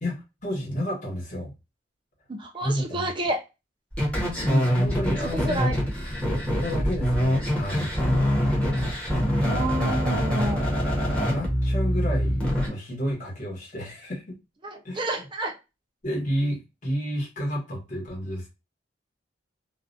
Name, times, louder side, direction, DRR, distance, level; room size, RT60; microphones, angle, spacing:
voice 1, 0.0-1.5 2.6-3.1 4.4-5.6 6.5-7.9 11.0-14.4 14.8-15.2 16.0-18.5, equal, 40° left, 1.0 m, -31 dB
voice 2, 2.3-3.4 5.2-5.8 9.4-10.7 14.6-15.6, right 1 dB, 25° right, 0.4 m, -30 dB
sound 1, 3.9-12.7, equal, 5° left, 0.8 m, -24 dB
2.4 x 2.1 x 2.4 m
head